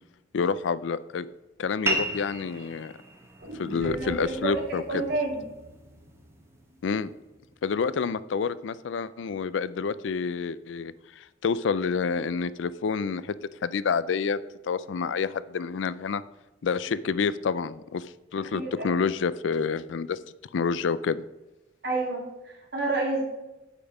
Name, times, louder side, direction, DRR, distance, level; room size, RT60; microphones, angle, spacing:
voice 1, 0.3-1.3 1.6-2.9 3.6-5.0 6.8-7.1 7.6-13.3 13.6-16.2 16.6-18.1 18.3-20.2 20.5-21.2, left 5 dB, 75° left, 17 dB, 0.4 m, -28 dB
sound 1, 1.9-6.9, right 1 dB, 15° right, 1.1 m, -35 dB
sound 2, 3.4-7.4 7.7-7.8, equal, 80° right, 3.3 m, -44 dB
voice 2, 3.8-5.4 18.5-18.8 21.8-23.2, right 3 dB, 55° right, -2 dB, 3.0 m, -30 dB
8.4 x 5.4 x 5.9 m, 1.0 s
head